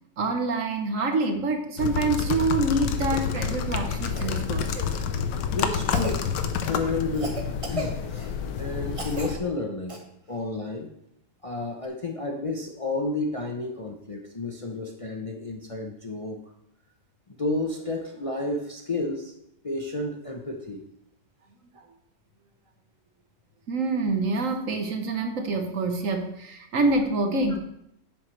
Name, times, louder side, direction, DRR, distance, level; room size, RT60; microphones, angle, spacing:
voice 1, 0.2-4.7 21.8-21.9 23.7-27.6, right 2 dB, 55° right, 5 dB, 1.3 m, -26 dB
sound 1, 1.8-9.4, left 7 dB, 80° left, 1.4 m, -29 dB
Cough, 3.0-3.2 4.1-4.9 5.9-6.2 7.1-8.3 8.9-9.3 9.9-10.0 11.8-11.9, right 1 dB, 25° right, 0.9 m, -35 dB
voice 2, 5.5-6.2 6.7-8.0 8.6-10.0 10.3-10.9 11.4-16.4 17.4-19.3 19.6-20.8, left 2 dB, 60° left, 1 dB, 0.3 m, -31 dB
10.0 x 7.8 x 3.2 m, 0.76 s
omnidirectional pair, 1.9 m